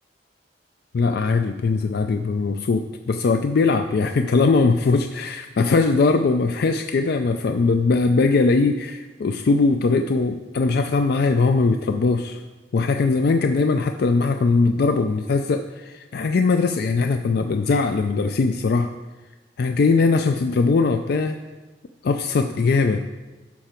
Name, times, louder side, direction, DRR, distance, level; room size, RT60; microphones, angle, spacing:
voice 1, 0.9-12.4 12.7-18.9 19.6-21.4 22.0-23.1, left 4 dB, 60° left, 7 dB, 0.4 m, -20 dB
11.5 x 5.8 x 4.4 m, 1.2 s
head